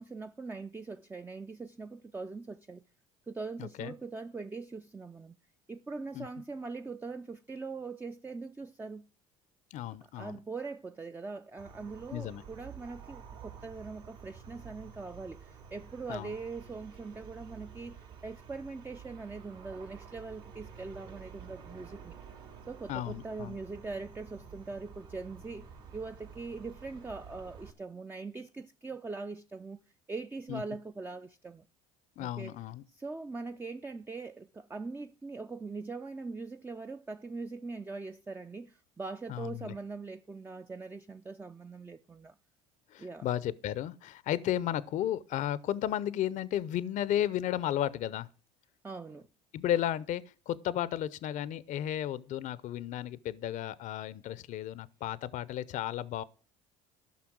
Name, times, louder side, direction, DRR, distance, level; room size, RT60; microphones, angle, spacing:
voice 1, 0.0-2.8 3.3-5.4 5.7-9.1 10.2-22.2 22.7-29.8 30.1-31.6 32.2-32.6 32.9-42.3 43.0-43.3 48.8-49.3, right 3 dB, 10° right, 0.4 m, -42 dB
voice 2, 3.6-3.9 6.1-6.3 9.7-10.4 12.1-12.4 16.1-16.3 22.9-23.6 30.5-30.6 32.2-32.8 39.3-39.7 42.9-48.3 49.5-56.2, left 11 dB, 50° left, 0.6 m, -34 dB
sound 1, 11.6-27.7, right 7 dB, 65° right, 3.1 m, -50 dB
13.5 x 5.8 x 6.1 m
hypercardioid pair, 75°, 16 cm